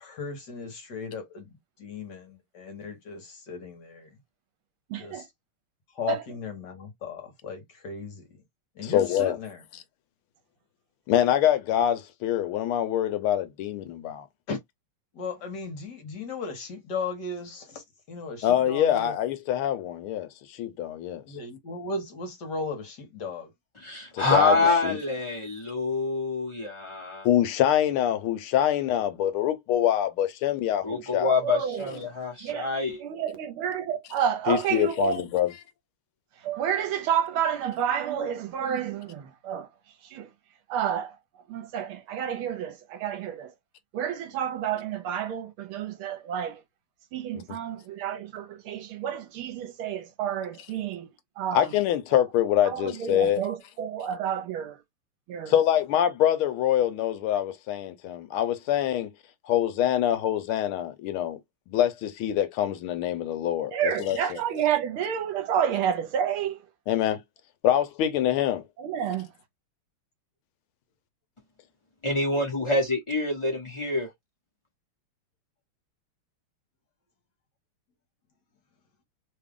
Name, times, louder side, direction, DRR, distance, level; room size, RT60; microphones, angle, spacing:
voice 1, 0.0-1.5 1.8-4.1 5.0-5.3 6.0-8.2 8.8-9.6 14.5-14.6 15.1-19.1 21.3-23.5, left 4 dB, 55° left, 1.5 m, -36 dB
voice 2, 4.9-5.2 6.1-6.2 24.5-24.9 31.4-32.0 32.4-32.7 33.0-35.2 36.4-39.7 40.1-40.3 40.7-41.1 41.5-43.5 43.9-46.6 47.1-51.1 51.4-51.7 52.7-54.8 55.3-55.5 63.7-66.6 68.8-69.3, right 9 dB, 75° right, 1.6 m, -30 dB
voice 3, 8.8-9.4 11.1-14.3 18.4-21.2 24.1-24.6 24.8-25.0 27.2-31.4 34.5-35.6 51.5-53.4 55.5-59.1 59.4-61.4 61.7-64.4 66.9-67.2 67.6-68.6, left 11 dB, 75° left, 1.5 m, -25 dB
voice 4, 23.8-27.3 30.8-33.0 72.0-74.1, left 3 dB, 20° left, 1.0 m, -26 dB
3.6 x 2.3 x 3.5 m
omnidirectional pair, 2.4 m